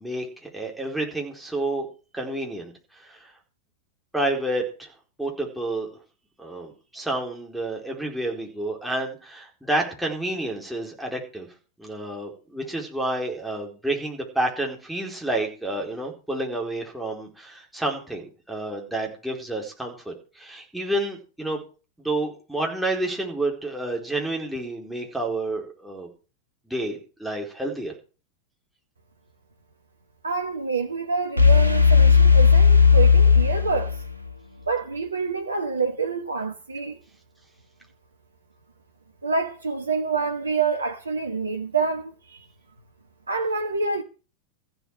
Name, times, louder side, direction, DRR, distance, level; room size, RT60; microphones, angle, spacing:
voice 1, 0.0-1.9 2.1-3.3 4.1-4.9 5.2-5.9 6.4-11.5 11.8-21.6 22.0-26.1 26.7-27.9, right 1 dB, 5° right, 4.5 m, -29 dB
voice 2, 30.2-33.9 34.7-37.0 39.2-42.5 43.3-44.0, right 4 dB, 75° right, 1.3 m, -27 dB
sound 1, 31.4-34.3, left 6 dB, 85° left, 1.8 m, -15 dB
15.0 x 7.9 x 6.4 m
figure-of-eight pair, 90°, 0 cm